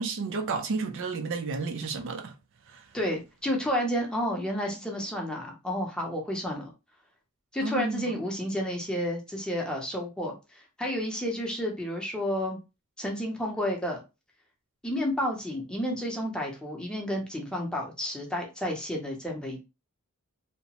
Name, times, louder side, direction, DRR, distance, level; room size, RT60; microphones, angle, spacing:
voice 1, 0.0-2.3 2.7-2.9 7.6-8.2, right 4 dB, 60° right, 0.5 m, -32 dB
voice 2, 2.9-6.7 7.5-12.6 13.0-14.0 14.8-19.6, equal, 5° left, 0.6 m, -31 dB
2.8 x 2.0 x 2.9 m
head